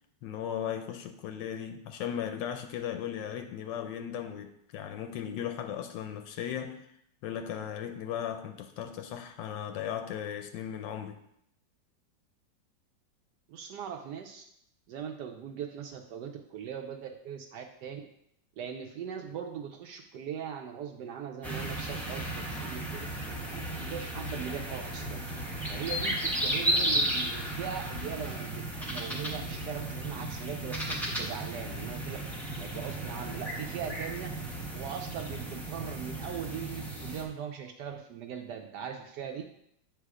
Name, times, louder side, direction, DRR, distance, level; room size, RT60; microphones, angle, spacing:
voice 1, 0.2-6.9 7.2-11.2, left 9 dB, 80° left, 1.2 m, -37 dB
voice 2, 13.5-14.4 14.9-18.0 18.6-23.1 23.5-25.2 25.7-32.2 32.6-34.4 34.7-39.4, right 8 dB, 75° right, 1.1 m, -40 dB
sound 1, 21.4-37.2, right 1 dB, ahead, 0.5 m, -34 dB
7.4 x 3.4 x 4.8 m
omnidirectional pair, 2.0 m